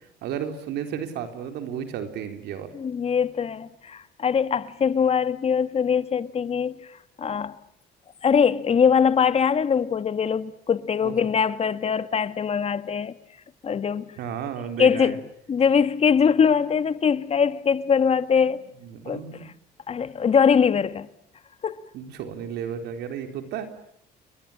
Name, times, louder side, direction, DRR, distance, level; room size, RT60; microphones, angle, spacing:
voice 1, 0.2-2.7 11.0-11.3 14.2-15.2 18.4-18.5 18.8-19.5 21.9-23.7, right 8 dB, 80° right, 4.1 m, -33 dB
voice 2, 2.7-6.8 7.2-7.6 8.2-13.1 13.6-14.1 14.8-15.2 15.5-18.6 19.0-19.2 19.9-21.1 21.6-21.9, left 6 dB, 35° left, 1.5 m, -22 dB
30.0 x 22.5 x 8.8 m
cardioid pair, 110°, 17 cm